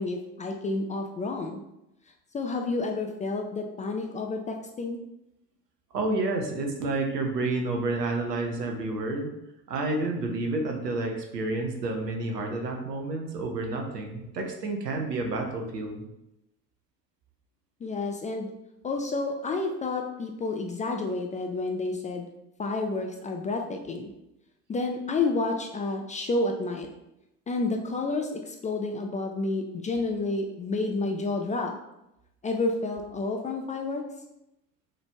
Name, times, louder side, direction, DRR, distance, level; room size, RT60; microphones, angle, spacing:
voice 1, 0.0-1.6 2.3-5.0 17.8-18.5 18.8-22.3 22.6-24.1 24.7-26.9 27.5-31.7 32.4-34.0, left 3 dB, 20° left, 3 dB, 0.3 m, -30 dB
voice 2, 5.9-9.3 9.7-16.1, right 2 dB, 90° right, 2 dB, 0.7 m, -30 dB
4.0 x 3.2 x 3.3 m, 0.88 s
figure-of-eight pair, 65°, 47 cm